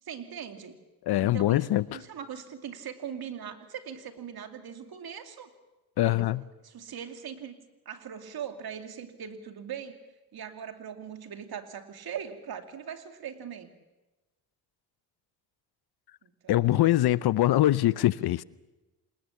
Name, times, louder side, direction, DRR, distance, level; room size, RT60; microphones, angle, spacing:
voice 1, 0.0-0.8 1.2-5.5 6.0-6.2 6.6-7.6 7.8-10.0 10.3-13.7 16.2-16.9, right 8 dB, 60° right, 2.6 m, -40 dB
voice 2, 1.0-2.0 6.0-6.4 16.5-18.4, left 14 dB, 65° left, 0.8 m, -23 dB
27.5 x 19.5 x 7.2 m
supercardioid pair, 65°, 42 cm